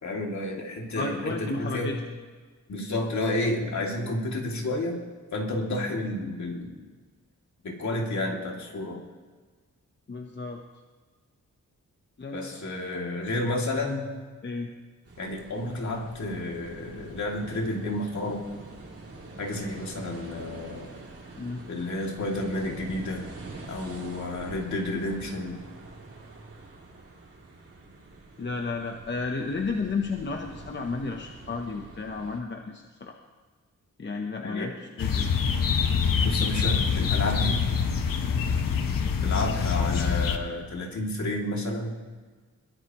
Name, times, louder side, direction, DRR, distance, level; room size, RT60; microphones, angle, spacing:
voice 1, 0.0-1.9 2.7-5.0 5.3-6.7 7.6-9.0 12.3-14.1 15.2-18.4 19.4-20.9 21.7-23.3 23.7-25.6 34.4-34.7 36.2-37.7 39.2-42.0, left 1 dB, 60° left, -1 dB, 2.7 m, -31 dB
voice 2, 0.9-2.0 10.1-10.6 12.2-12.6 13.3-13.5 14.4-14.7 21.4-21.6 28.4-33.1 34.0-35.3, left 4 dB, 35° left, 3 dB, 0.9 m, -32 dB
sound 1, 15.1-32.4, right 3 dB, 45° right, 3.1 m, -45 dB
sound 2, 35.0-40.4, left 6 dB, 85° left, 1.2 m, -25 dB
21.5 x 15.5 x 3.1 m, 1.4 s
wide cardioid pair, 140°, 33 cm